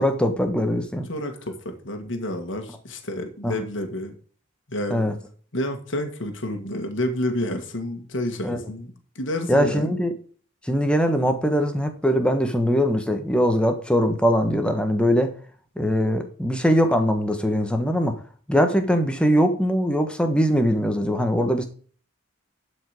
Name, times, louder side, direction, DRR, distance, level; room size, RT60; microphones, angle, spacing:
voice 1, 0.0-1.1 3.4-3.5 4.9-5.1 8.4-8.6 9.5-10.1 10.6-15.3 15.8-18.2 18.5-21.6, equal, 5° left, 6 dB, 1.3 m, -21 dB
voice 2, 1.0-4.1 4.7-5.1 5.5-9.9, left 1 dB, 65° left, 5 dB, 1.8 m, -29 dB
11.5 x 5.3 x 5.0 m, 0.43 s
head